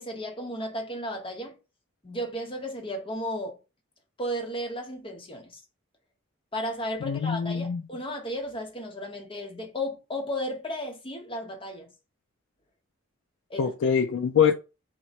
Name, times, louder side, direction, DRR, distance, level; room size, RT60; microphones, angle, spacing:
voice 1, 0.0-1.5 2.0-3.6 4.2-5.6 6.5-11.9 13.5-13.7, equal, 25° left, 0.8 m, -34 dB
voice 2, 7.0-7.8 13.6-14.5, left 7 dB, 65° left, 0.3 m, -24 dB
4.4 x 2.1 x 4.0 m
head